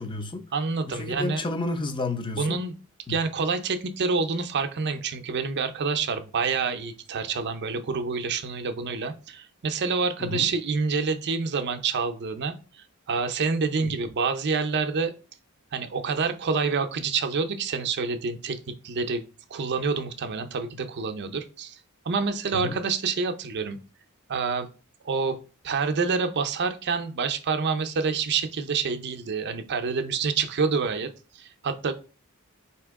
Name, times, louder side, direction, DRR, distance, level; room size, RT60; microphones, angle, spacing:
voice 1, 0.0-0.4 0.9-2.6 3.1-3.2 10.2-10.5 13.8-13.9 22.5-22.8, left 2 dB, 20° left, 0.5 m, -31 dB
voice 2, 0.5-1.4 2.4-2.7 3.1-12.5 13.1-15.1 15.7-18.6 18.8-19.2 19.5-21.8 22.1-23.8 24.3-24.7 25.0-25.4 25.6-31.1 31.3-31.9, right 5 dB, 50° right, 0.5 m, -27 dB
4.2 x 2.9 x 3.5 m
head